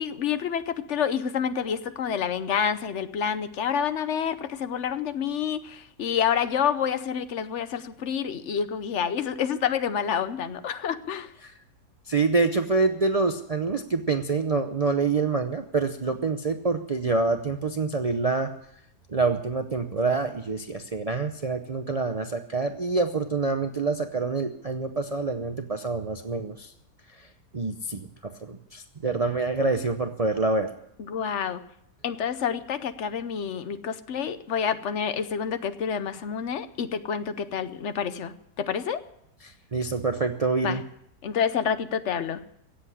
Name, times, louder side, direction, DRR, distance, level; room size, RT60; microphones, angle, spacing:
voice 1, 0.0-11.3 31.0-31.6 32.0-39.0 40.6-40.8 41.2-42.4, left 7 dB, 55° left, 12 dB, 0.9 m, -28 dB
voice 2, 12.1-18.5 19.1-26.7 27.5-30.7 39.7-40.8, right 3 dB, 70° right, 7 dB, 0.3 m, -26 dB
16.5 x 7.9 x 9.9 m, 0.77 s
omnidirectional pair, 1.8 m